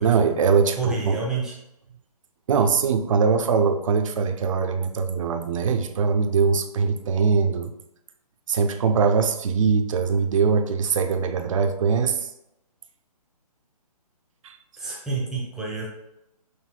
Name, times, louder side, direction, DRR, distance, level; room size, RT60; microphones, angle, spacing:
voice 1, 0.0-1.2 2.5-7.7 8.5-12.3 14.4-14.6, right 5 dB, 55° right, 7 dB, 0.5 m, -22 dB
voice 2, 0.8-1.6 14.8-15.9, right 3 dB, 5° right, -4 dB, 0.6 m, -28 dB
6.1 x 2.6 x 2.2 m, 0.85 s
hypercardioid pair, 150°, 20 cm